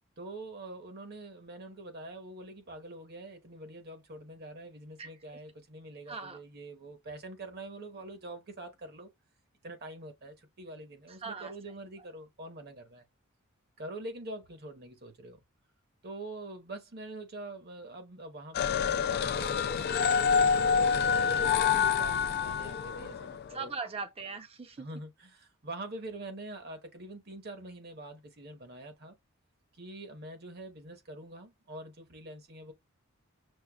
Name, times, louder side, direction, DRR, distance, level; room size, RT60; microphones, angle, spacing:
voice 1, 0.2-9.1 9.6-13.0 13.8-15.4 16.0-23.7 24.8-29.2 29.7-32.7, right 2 dB, 50° right, 1.0 m, -45 dB
voice 2, 5.0-5.4 6.1-6.4 11.1-11.5 21.2-21.5 23.5-24.9, right 4 dB, 30° right, 0.6 m, -41 dB
sound 1, 18.5-23.4, left 6 dB, 50° left, 0.4 m, -27 dB
6.4 x 2.2 x 2.3 m
head